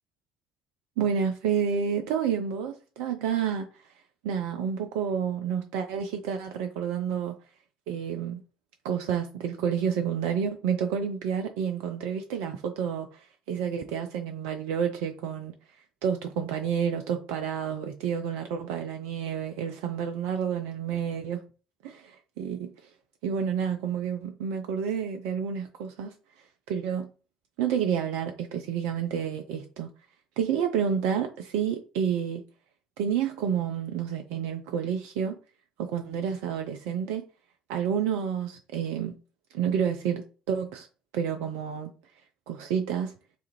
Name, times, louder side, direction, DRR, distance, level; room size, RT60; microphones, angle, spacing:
voice 1, 1.0-3.9 4.2-7.4 7.9-8.4 8.8-15.5 16.0-21.4 21.8-22.9 23.2-26.1 26.7-27.1 27.6-29.9 30.4-32.4 33.0-35.3 35.8-37.2 37.7-39.1 39.5-40.9 41.1-41.9 42.5-43.1, right 7 dB, 65° right, 0.3 m, -29 dB
3.2 x 2.4 x 2.8 m
figure-of-eight pair, 55°, 4 cm